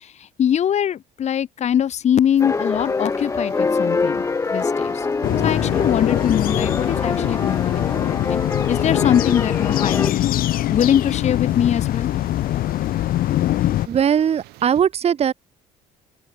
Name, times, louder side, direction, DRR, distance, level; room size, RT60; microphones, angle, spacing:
voice 1, 0.4-4.2 4.5-5.1 5.4-8.4 8.7-10.3 10.7-12.1, left 9 dB, 45° left, 1.6 m, -22 dB
sound 1, 2.2-14.8, right 21 dB, 90° right, 5.2 m, -47 dB
sound 2, 2.4-10.1, left 4 dB, 20° left, 0.8 m, -24 dB
sound 3, 5.2-13.9, left 14 dB, 65° left, 1.2 m, -22 dB
voice 2, 13.9-15.3, right 8 dB, 40° right, 1.6 m, -19 dB
cardioid pair, 115°, 16 cm